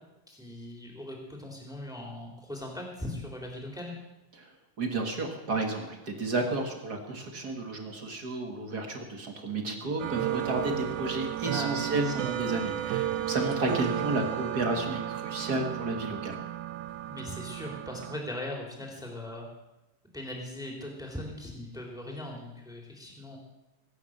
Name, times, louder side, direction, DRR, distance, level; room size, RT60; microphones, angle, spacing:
voice 1, 0.3-4.0 11.5-12.1 17.1-19.5 20.1-23.4, left 1 dB, ahead, 0 dB, 3.4 m, -39 dB
voice 2, 4.8-16.4, right 2 dB, 35° right, 3 dB, 1.9 m, -32 dB
sound 1, 10.0-18.2, right 12 dB, 80° right, 2.1 m, -33 dB
22.5 x 9.7 x 6.7 m, 0.94 s
omnidirectional pair, 3.7 m